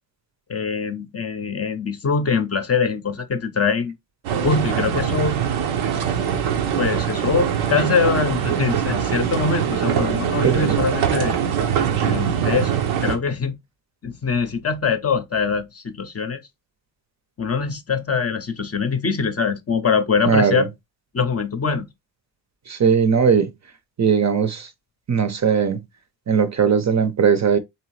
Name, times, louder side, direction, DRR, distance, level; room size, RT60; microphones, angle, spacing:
voice 1, 0.5-3.9 4.4-5.4 6.8-11.3 12.0-12.7 13.0-13.6 14.0-16.4 17.4-20.7 21.1-21.9, left 5 dB, 30° left, 0.6 m, -23 dB
sound 1, 4.2-13.2, right 8 dB, 85° right, 0.8 m, -22 dB
voice 2, 10.4-10.8 20.3-20.7 22.7-23.5 24.0-24.7 25.1-25.8 26.3-27.6, right 6 dB, 35° right, 0.6 m, -18 dB
3.5 x 2.9 x 3.1 m
supercardioid pair, 50°, 47 cm